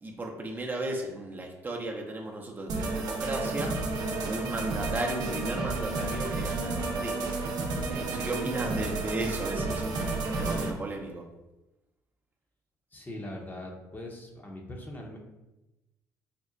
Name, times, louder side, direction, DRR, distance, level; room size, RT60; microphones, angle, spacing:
voice 1, 0.0-3.8 4.2-7.3 7.9-10.1 10.4-11.2, right 2 dB, 25° right, 0 dB, 0.7 m, -35 dB
sound 1, 2.7-10.7, right 3 dB, 65° right, 0.7 m, -31 dB
voice 2, 12.9-15.2, left 1 dB, 25° left, 1 dB, 0.9 m, -41 dB
4.3 x 2.1 x 3.8 m, 1.0 s
supercardioid pair, 70°, 7 cm